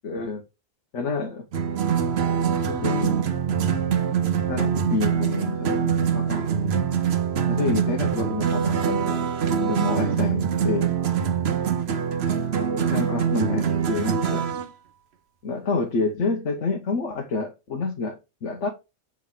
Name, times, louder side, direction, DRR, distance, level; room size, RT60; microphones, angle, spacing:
voice 1, 0.0-0.4 0.9-1.4 2.6-3.2 4.5-6.4 7.5-9.3 9.6-10.9 12.7-14.5 15.4-18.7, left 4 dB, 70° left, 1.2 m, -28 dB
sound 1, 1.5-14.7, right 7 dB, 60° right, 1.0 m, -24 dB
7.6 x 3.7 x 3.7 m
omnidirectional pair, 1.3 m